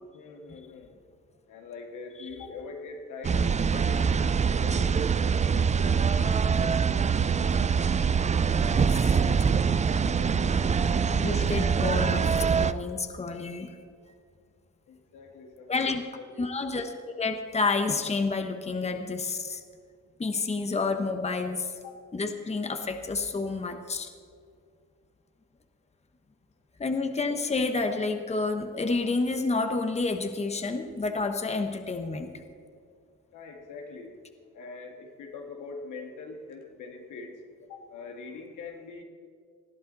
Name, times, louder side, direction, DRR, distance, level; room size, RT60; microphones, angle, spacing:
voice 1, 0.1-1.0 1.5-4.3 4.6-5.0 5.7-7.1 10.1-10.4 14.9-15.9 16.3-16.6 21.8-22.0 33.3-34.2 34.5-37.4 37.7-39.0, left 4 dB, 85° left, 2 dB, 2.1 m, -43 dB
sound 1, 3.2-12.7, right 6 dB, 25° right, 0.4 m, -24 dB
voice 2, 8.6-9.1 11.1-13.8 15.7-16.0 16.4-19.6 20.2-21.7 22.1-24.1 26.8-32.3, left 3 dB, 20° left, 6 dB, 1.2 m, -29 dB
20.0 x 13.0 x 4.1 m, 2.2 s
cardioid pair, 90°, 30 cm